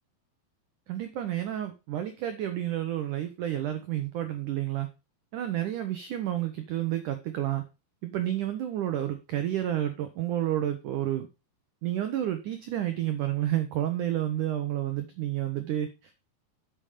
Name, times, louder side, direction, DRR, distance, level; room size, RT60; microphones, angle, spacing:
voice 1, 0.9-4.9 5.3-7.6 8.0-11.3 11.8-15.9, right 12 dB, 85° right, 8 dB, 1.8 m, -30 dB
8.9 x 7.1 x 5.1 m, 0.28 s
omnidirectional pair, 5.0 m